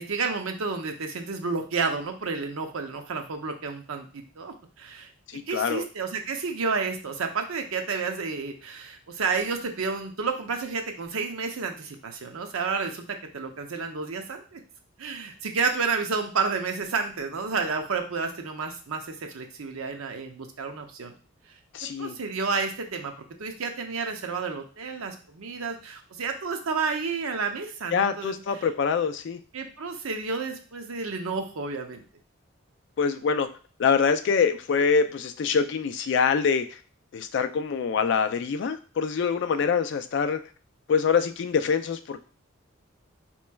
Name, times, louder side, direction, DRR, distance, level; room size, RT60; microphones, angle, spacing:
voice 1, 0.0-14.6 15.0-21.1 22.0-23.1 23.4-28.6 29.5-32.0, right 4 dB, 85° right, 5 dB, 0.6 m, -31 dB
voice 2, 5.3-5.8 21.7-22.2 27.9-29.4 33.0-33.5 33.8-36.8 37.1-40.4 40.9-42.2, left 6 dB, 55° left, 9 dB, 0.3 m, -25 dB
4.3 x 3.0 x 2.2 m, 0.38 s
head